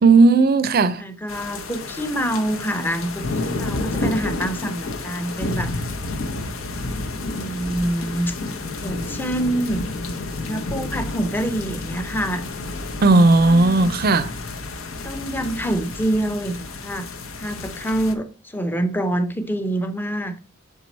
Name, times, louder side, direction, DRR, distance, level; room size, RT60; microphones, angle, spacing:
voice 1, 0.0-1.0 13.0-14.3, right 3 dB, 45° right, 0.5 m, -15 dB
voice 2, 1.0-5.8 7.2-8.4 8.8-9.8 10.5-12.4 13.4-13.9 15.0-17.1 17.4-20.4, right 1 dB, 10° left, 0.6 m, -26 dB
sound 1, 1.3-18.1, left 2 dB, 80° left, 0.8 m, -30 dB
6.6 x 4.6 x 4.1 m
head